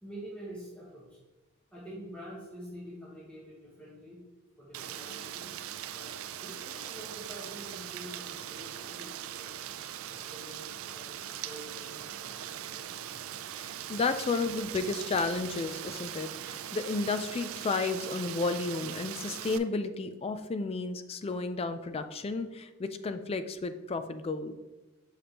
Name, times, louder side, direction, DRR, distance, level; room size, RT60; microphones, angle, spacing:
voice 1, 0.0-1.2 1.7-4.2 4.6-9.6 10.1-13.0, equal, 5° left, -8 dB, 1.2 m, -47 dB
Rain, 4.7-19.6, right 10 dB, 70° right, 0.4 m, -41 dB
voice 2, 13.6-24.5, left 3 dB, 30° left, 10 dB, 0.3 m, -32 dB
6.5 x 5.1 x 2.9 m, 1.2 s
head